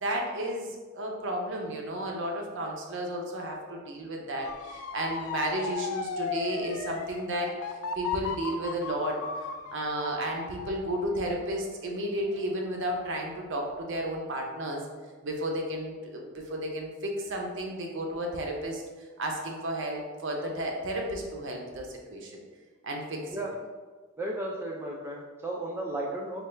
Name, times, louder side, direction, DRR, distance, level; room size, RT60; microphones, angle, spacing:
voice 1, 0.0-9.2 9.7-14.8 15.2-18.8 19.2-22.3 22.8-23.4, right 1 dB, 65° right, 1 dB, 0.6 m, -33 dB
Motor vehicle (road) / Siren, 4.4-13.3 13.7-14.2, left 5 dB, 90° left, 0.3 m, -37 dB
voice 2, 24.2-26.5, right 1 dB, 10° right, -2 dB, 0.3 m, -34 dB
4.2 x 2.3 x 3.2 m, 1.4 s
head